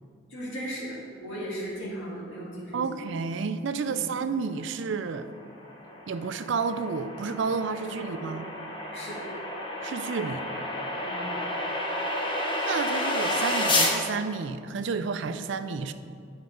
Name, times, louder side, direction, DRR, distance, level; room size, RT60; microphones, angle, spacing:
voice 1, 0.3-2.8 3.9-4.0 7.8-8.3 8.9-9.3 11.0-11.4, equal, 65° left, -9 dB, 2.1 m, -37 dB
voice 2, 2.7-5.3 6.1-8.5 9.8-10.4 12.6-15.9, right 5 dB, 60° right, 10 dB, 0.4 m, -31 dB
sound 1, 5.3-14.0, left 1 dB, 25° left, 0.9 m, -30 dB
9.5 x 4.7 x 5.3 m, 2.3 s
head